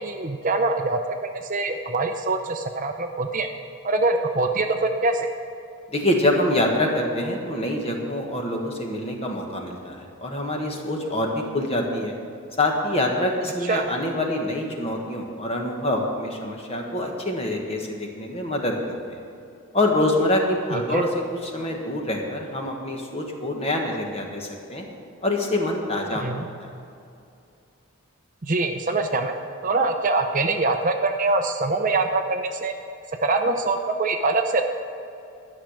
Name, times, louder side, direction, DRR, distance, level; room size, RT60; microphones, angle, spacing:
voice 1, 0.0-3.5 3.8-5.3 13.7-13.9 20.7-21.0 26.2-26.5 28.4-29.4 29.6-32.7 33.2-34.6, right 3 dB, 35° right, 6 dB, 0.6 m, -24 dB
voice 2, 5.9-12.2 12.6-19.2 19.7-24.8 25.2-26.3 26.6-26.7, left 1 dB, 25° left, 1 dB, 1.4 m, -25 dB
12.5 x 6.6 x 8.9 m, 2.6 s
head